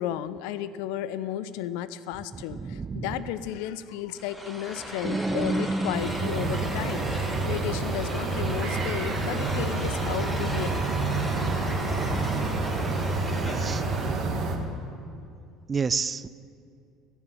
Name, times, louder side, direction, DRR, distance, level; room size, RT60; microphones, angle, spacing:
voice 1, 0.0-10.7, left 11 dB, 60° left, 15 dB, 0.5 m, -33 dB
voice 2, 2.6-3.1 11.8-12.6 13.6-13.8 15.7-16.3, right 5 dB, 30° right, 16 dB, 0.4 m, -31 dB
sound 1, 4.2-14.5, equal, 5° left, 2.3 m, -37 dB
sound 2, 5.0-7.8, right 2 dB, 10° right, 0.8 m, -31 dB
sound 3, 5.9-14.6, right 3 dB, 45° right, 1.5 m, -28 dB
14.5 x 7.1 x 8.8 m, 2.5 s
figure-of-eight pair, 60°, 0 cm